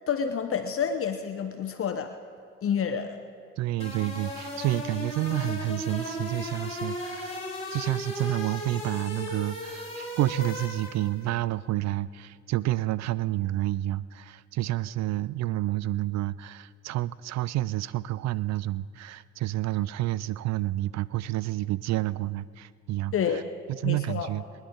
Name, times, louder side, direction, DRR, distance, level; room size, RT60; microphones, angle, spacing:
voice 1, 0.1-2.1 2.6-3.2 23.1-23.4 23.8-24.3, left 7 dB, 50° left, 7 dB, 1.0 m, -28 dB
voice 2, 3.6-7.4 7.7-23.4 23.7-24.4, right 15 dB, 65° right, 19 dB, 0.4 m, -29 dB
sound 1, 3.8-11.2, left 1 dB, 20° left, 4.3 m, -36 dB
23.5 x 10.5 x 3.9 m, 2.4 s
supercardioid pair, 70°, 30 cm